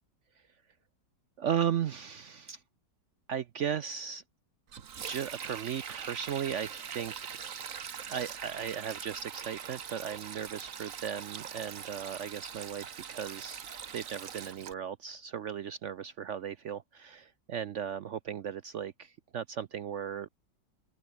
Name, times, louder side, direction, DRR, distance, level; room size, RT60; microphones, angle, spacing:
voice 1, 1.4-2.6 3.3-4.2 5.0-7.3 8.1-13.7 13.9-20.3, right 8 dB, 65° right, 0.7 m, -36 dB
Sink (filling or washing), 4.7-14.7, right 7 dB, 50° right, 1.5 m, -42 dB
open air
omnidirectional pair, 1.9 m